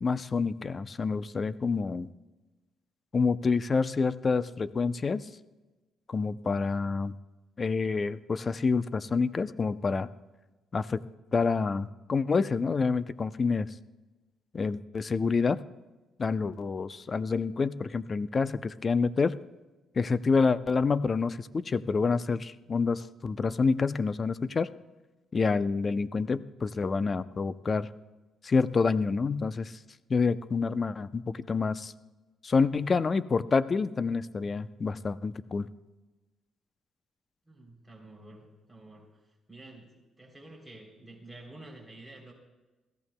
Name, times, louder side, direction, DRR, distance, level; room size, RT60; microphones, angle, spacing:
voice 1, 0.0-2.1 3.1-5.3 6.1-7.1 7.6-10.1 10.7-11.0 11.3-13.7 14.5-15.6 16.2-19.4 20.0-24.7 25.3-27.9 28.4-29.7 30.1-31.9 32.4-35.7, left 4 dB, 35° left, 14 dB, 0.5 m, -28 dB
voice 2, 37.5-39.2 39.5-39.9 40.2-42.3, right 2 dB, ahead, -1 dB, 3.2 m, -50 dB
21.5 x 16.0 x 2.2 m, 1.1 s
cardioid pair, 90°, 0 cm